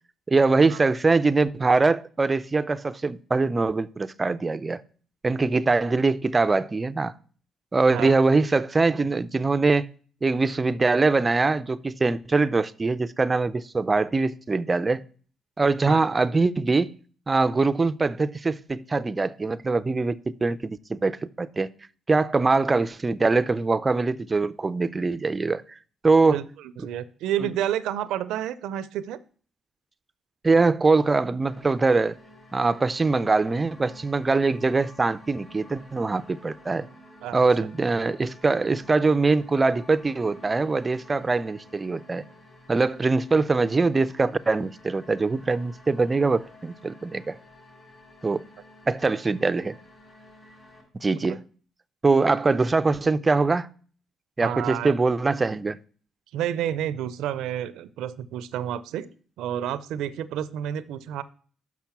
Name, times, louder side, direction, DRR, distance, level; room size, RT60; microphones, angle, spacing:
voice 1, 0.3-4.8 5.2-7.1 7.7-9.9 10.2-15.0 15.6-16.9 17.3-21.7 22.1-25.6 26.0-26.4 30.4-32.2 32.5-36.9 37.3-42.2 42.7-47.4 48.2-48.4 48.9-49.8 51.0-51.4 52.0-53.7 54.4-55.8, right 3 dB, 25° right, 0.4 m, -23 dB
voice 2, 26.8-29.2 37.2-37.4 51.3-51.4 54.4-54.9 56.3-59.1 59.4-61.2, right 11 dB, 90° right, 0.5 m, -30 dB
sound 1, 31.4-50.8, left 1 dB, 30° left, 4.0 m, -51 dB
6.0 x 5.8 x 7.1 m
cardioid pair, 90°, 0 cm